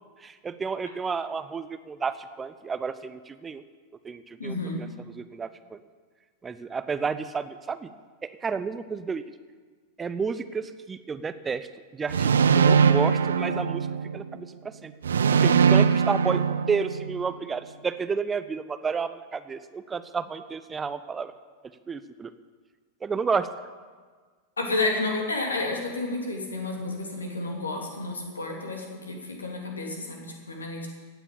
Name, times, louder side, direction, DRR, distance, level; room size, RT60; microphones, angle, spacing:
voice 1, 0.2-3.6 4.0-5.8 6.4-7.9 8.2-9.2 10.0-11.7 11.9-13.9 14.1-14.9 15.3-21.3 21.9-22.3 23.0-23.5, right 5 dB, 15° right, 12 dB, 0.7 m, -31 dB
voice 2, 4.4-4.8 24.6-30.9, left 2 dB, 75° left, 1 dB, 2.9 m, -31 dB
sound 1, 12.1-14.3 15.0-17.2, right 6 dB, 65° right, 0.6 m, -21 dB
15.5 x 9.2 x 8.5 m, 1.5 s
figure-of-eight pair, 90°, 0 cm